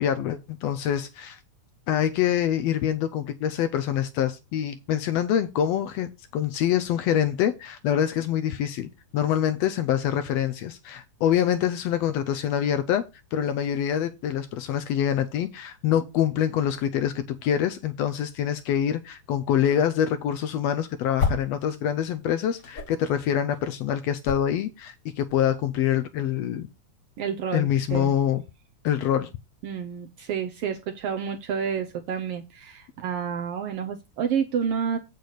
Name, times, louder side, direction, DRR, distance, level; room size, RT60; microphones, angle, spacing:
voice 1, 0.0-1.4 1.9-8.9 9.1-13.0 13.3-26.7 27.5-28.4 28.8-29.3, left 10 dB, 75° left, 1.6 m, -25 dB
sound 1, 20.2-21.7 21.9-25.6, left 4 dB, 40° left, 1.4 m, -32 dB
voice 2, 27.2-28.1 29.6-35.0, right 7 dB, 70° right, 1.4 m, -29 dB
8.0 x 6.5 x 4.1 m
omnidirectional pair, 3.3 m